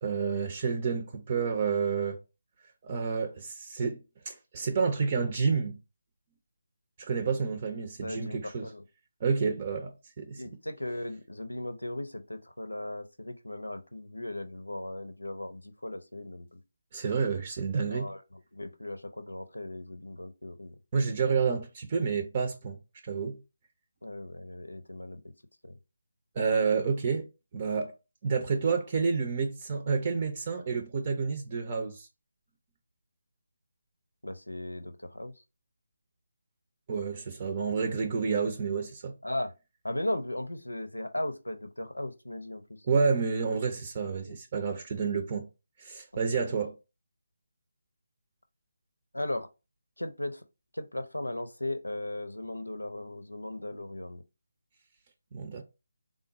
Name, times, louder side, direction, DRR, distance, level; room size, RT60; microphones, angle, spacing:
voice 1, 0.0-2.2 2.8-4.0 4.3-5.8 7.0-8.7 9.2-10.4 16.9-18.1 20.9-22.8 23.0-23.4 26.4-27.3 27.5-27.9 28.2-32.1 36.9-39.1 42.9-45.5 45.8-46.7 55.3-55.6, right 5 dB, 30° right, 0.6 m, -29 dB
voice 2, 7.8-8.8 10.4-16.6 17.9-20.7 24.0-25.2 25.6-25.8 34.2-35.3 39.2-39.5 39.8-42.8 44.1-44.4 46.1-46.4 49.1-49.5 50.0-50.4 50.7-54.2, left 1 dB, 85° left, 0.6 m, -37 dB
3.7 x 2.1 x 3.9 m
figure-of-eight pair, 155°, 0 cm